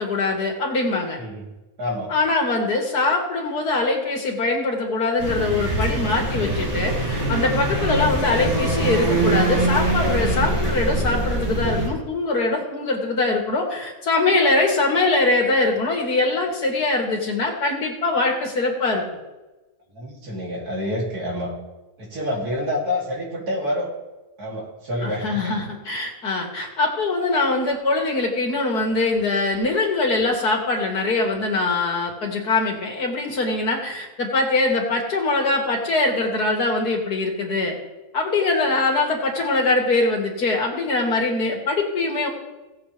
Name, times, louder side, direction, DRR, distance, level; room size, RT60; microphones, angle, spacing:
voice 1, 0.0-1.2 2.1-19.0 25.0-37.8 38.1-42.3, left 3 dB, 85° left, 1 dB, 2.6 m, -22 dB
voice 2, 1.2-1.5 1.8-2.1 7.7-7.9 19.9-21.5 22.0-23.9 24.4-25.6, left 1 dB, 85° right, -3 dB, 3.3 m, -28 dB
sound 1, 5.2-11.9, right 2 dB, 30° right, 4.1 m, -23 dB
17.5 x 7.8 x 3.4 m, 1.1 s
omnidirectional pair, 1.6 m